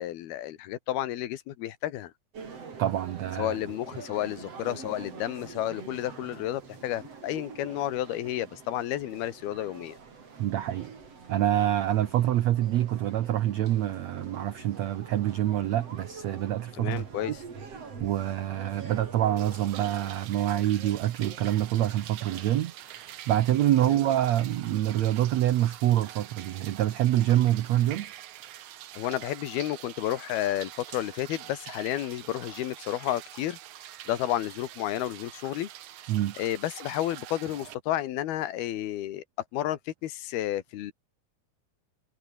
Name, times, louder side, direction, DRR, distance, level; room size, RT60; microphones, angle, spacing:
voice 1, 0.0-2.1 3.4-10.0 16.8-17.4 23.8-24.0 29.0-33.6 34.1-35.7 36.4-39.2 39.5-40.9, left 13 dB, 75° left, 3.2 m, -31 dB
sound 1, 2.3-20.4, right 5 dB, 40° right, 4.4 m, -45 dB
voice 2, 2.8-3.6 10.4-10.9 11.3-17.4 18.0-28.1 36.1-36.3, right 12 dB, 85° right, 1.5 m, -26 dB
sound 2, 10.6-11.1 12.9-13.1 13.9-14.7 15.5-15.8 16.9-17.4 18.0-21.7 22.1-22.6 22.9-23.5, left 2 dB, 15° left, 7.0 m, -54 dB
sound 3, 19.4-37.7, right 12 dB, 60° right, 2.3 m, -45 dB
omnidirectional pair, 4.6 m